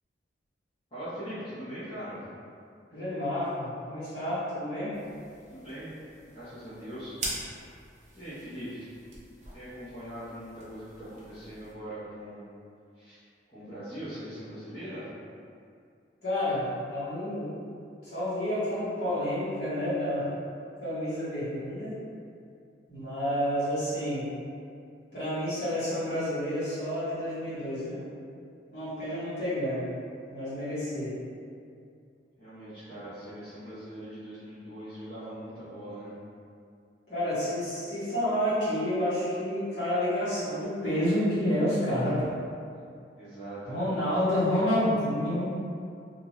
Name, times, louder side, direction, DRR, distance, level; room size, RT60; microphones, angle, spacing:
voice 1, 0.9-2.2 5.5-5.9 6.3-7.1 8.1-8.9 9.5-12.5 13.0-13.2 13.5-15.1 32.4-36.1 43.2-44.0, equal, 30° left, -15 dB, 0.9 m, -41 dB
voice 2, 2.9-4.9 16.2-17.6 18.0-20.3 20.8-22.0 22.9-24.3 25.1-28.0 28.7-29.9 30.3-31.1 37.1-42.2 43.7-45.5, left 1 dB, 70° left, -13 dB, 1.3 m, -29 dB
sound 1, 4.9-11.7, right 2 dB, 40° right, 0.5 m, -43 dB
2.5 x 2.4 x 3.0 m, 2.4 s
head